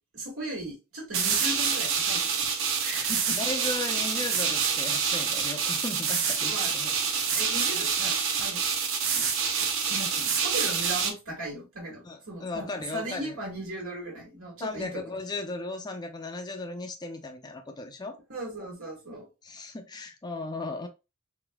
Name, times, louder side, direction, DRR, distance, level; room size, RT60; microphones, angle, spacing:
voice 1, 0.1-3.4 6.4-6.7 7.3-8.6 9.1-9.3 9.6-15.1 18.3-19.3, right 1 dB, 80° right, 1.8 m, -38 dB
sound 1, 1.1-11.1, right 6 dB, 65° right, 0.6 m, -27 dB
voice 2, 3.3-6.9 12.0-13.4 14.6-18.2 19.4-20.9, left 2 dB, 20° left, 0.4 m, -36 dB
4.0 x 2.5 x 2.2 m
head